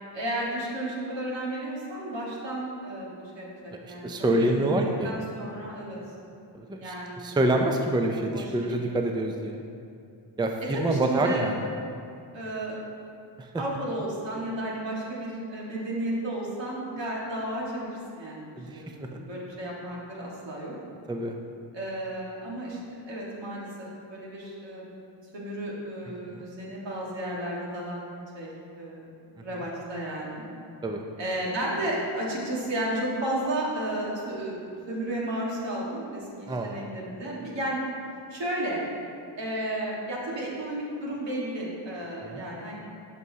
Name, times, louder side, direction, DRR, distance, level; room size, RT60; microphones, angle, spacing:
voice 1, 0.1-6.0 6.8-7.2 8.3-8.8 10.7-11.4 12.3-12.8 13.6-20.7 21.7-23.7 24.1-24.9 25.3-28.0 28.3-28.5 28.8-29.1 29.4-30.4 31.2-37.8 38.3-38.8 39.4-42.8, right 1 dB, 75° right, -4 dB, 1.8 m, -33 dB
voice 2, 3.8-5.1 6.5-9.6 10.4-11.5 13.4-13.5 18.6-18.8 21.1-21.3 26.3-26.5 30.8-31.0 36.5-36.8 42.2-42.4, right 1 dB, 10° right, 3 dB, 0.5 m, -27 dB
11.0 x 5.4 x 2.8 m, 2.5 s
cardioid pair, 80°, 44 cm